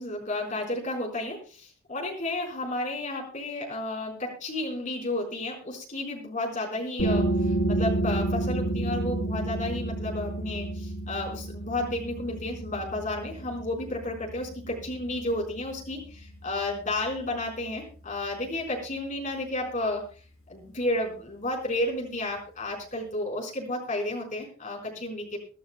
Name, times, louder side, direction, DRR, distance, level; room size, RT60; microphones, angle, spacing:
voice 1, 0.0-20.0 20.5-25.4, left 1 dB, 35° left, 0 dB, 4.2 m, -32 dB
sound 1, 7.0-18.4, right 1 dB, 65° left, 3.1 m, -31 dB
24.0 x 12.0 x 2.2 m, 0.38 s
head